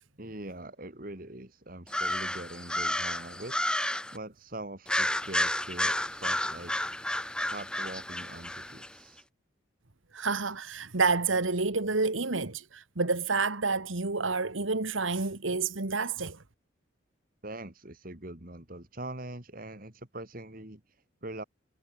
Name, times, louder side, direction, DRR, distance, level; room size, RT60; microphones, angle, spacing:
voice 1, 0.2-3.7 4.1-6.7 7.5-9.2 17.4-21.4, right 1 dB, 45° right, 2.6 m, -43 dB
sound 1, 1.9-4.2 4.9-8.9, left 1 dB, 5° left, 1.6 m, -31 dB
voice 2, 10.1-16.4, right 4 dB, 80° right, 1.8 m, -29 dB
head